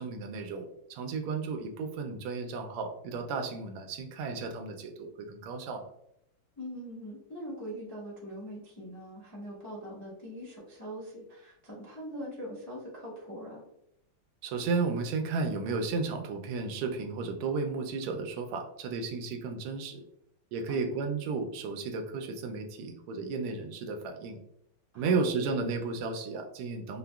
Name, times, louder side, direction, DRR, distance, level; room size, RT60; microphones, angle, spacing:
voice 1, 0.0-5.8 14.4-20.0 20.5-24.4 24.9-27.0, right 4 dB, 85° right, 5 dB, 1.5 m, -33 dB
voice 2, 6.6-13.6 20.7-20.9 24.9-25.3, equal, 25° left, -6 dB, 0.3 m, -42 dB
4.7 x 2.1 x 2.2 m, 0.77 s
omnidirectional pair, 2.4 m